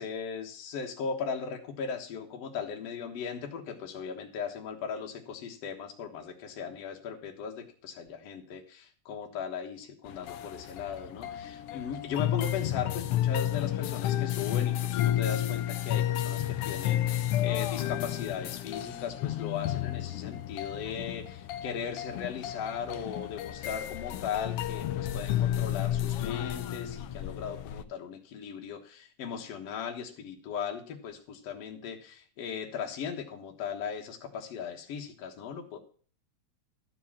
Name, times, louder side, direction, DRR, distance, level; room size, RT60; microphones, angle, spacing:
voice 1, 0.0-35.8, left 7 dB, 60° left, 2 dB, 2.3 m, -38 dB
sound 1, 10.1-27.8, left 12 dB, 80° left, 1.3 m, -32 dB
13.5 x 4.7 x 7.3 m, 0.44 s
omnidirectional pair, 3.3 m